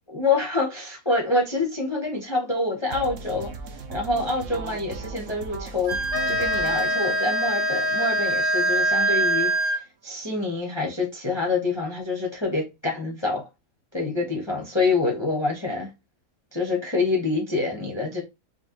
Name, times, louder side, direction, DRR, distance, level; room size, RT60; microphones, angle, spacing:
voice 1, 0.1-3.5 3.9-6.0 6.3-9.8 10.0-13.4 13.9-15.9 16.5-18.2, left 3 dB, 25° left, 0.7 m, -26 dB
sound 1, 2.9-8.9, right 5 dB, 60° right, 0.9 m, -38 dB
Wind instrument woodwind instrument, 5.8-9.8, right 3 dB, 15° right, 1.3 m, -24 dB
sound 2, 6.1-9.8, left 5 dB, 75° left, 0.5 m, -29 dB
5.3 x 2.5 x 2.9 m
omnidirectional pair, 1.7 m